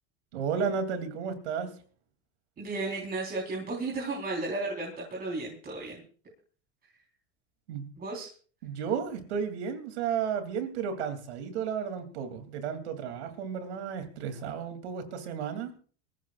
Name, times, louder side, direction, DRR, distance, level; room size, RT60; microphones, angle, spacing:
voice 1, 0.3-1.7 7.7-7.9 8.6-15.7, right 7 dB, 90° right, 7 dB, 3.0 m, -33 dB
voice 2, 2.6-6.0 8.0-8.3, right 3 dB, 30° right, -3 dB, 4.2 m, -34 dB
25.5 x 14.5 x 2.5 m, 0.42 s
supercardioid pair, 120°, 33 cm